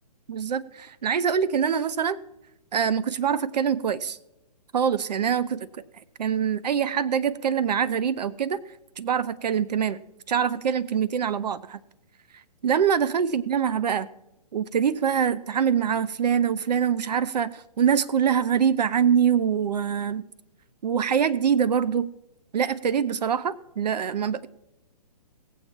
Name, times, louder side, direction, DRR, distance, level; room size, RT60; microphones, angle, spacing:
voice 1, 0.3-2.2 2.7-4.2 4.7-5.7 6.2-8.6 9.0-10.0 10.3-11.8 12.3-14.1 14.5-20.2 20.8-22.1 22.5-24.5, right 8 dB, 75° right, 17 dB, 0.5 m, -24 dB
18.0 x 7.3 x 4.4 m, 0.91 s
hypercardioid pair, 140°, 21 cm